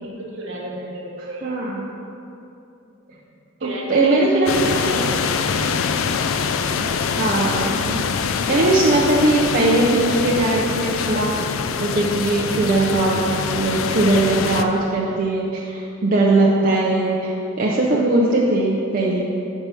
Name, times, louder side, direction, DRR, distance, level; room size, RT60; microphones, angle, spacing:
voice 1, 0.0-1.5 3.1-3.2 3.6-5.7, right 1 dB, 70° right, -2 dB, 1.2 m, -33 dB
voice 2, 1.4-1.8 3.6-5.0 6.8-8.1 8.5-11.4 11.8-19.3, right 2 dB, 40° right, -4 dB, 0.5 m, -20 dB
sound 1, 4.5-14.6, left 6 dB, 75° left, 0.3 m, -24 dB
5.4 x 4.7 x 5.5 m, 2.8 s
head